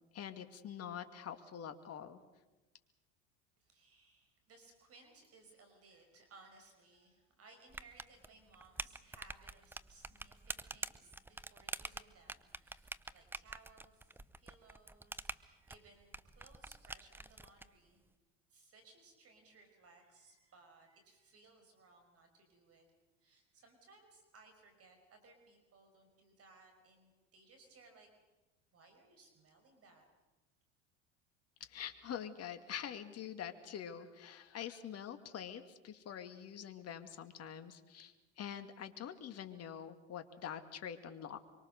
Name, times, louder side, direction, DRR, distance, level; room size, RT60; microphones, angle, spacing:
voice 1, 0.1-2.2 31.6-41.4, left 9 dB, 45° left, 9 dB, 2.4 m, -45 dB
voice 2, 3.6-18.0 18.5-22.8 23.2-28.1 28.7-30.1, right 3 dB, 40° right, 5 dB, 5.5 m, -63 dB
sound 1, 7.7-17.7, right 2 dB, 5° right, 0.7 m, -47 dB
25.0 x 24.0 x 6.7 m, 1.1 s
hypercardioid pair, 85°, 35 cm